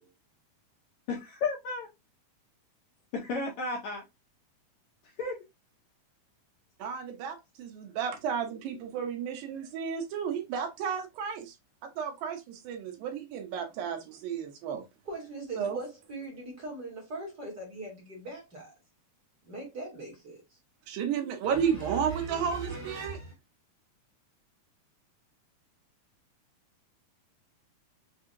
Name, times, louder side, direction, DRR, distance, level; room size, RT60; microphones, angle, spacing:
voice 1, 1.1-1.9 3.1-4.0 5.0-5.4, left 3 dB, 75° left, 1.7 m, -33 dB
voice 2, 6.8-11.5 11.8-14.8 15.6-15.8 20.9-23.2, right 7 dB, 80° right, 2.5 m, -33 dB
voice 3, 15.0-18.7 19.4-20.4 21.4-23.3, right 3 dB, 35° right, 1.7 m, -40 dB
5.9 x 2.7 x 2.6 m
omnidirectional pair, 4.1 m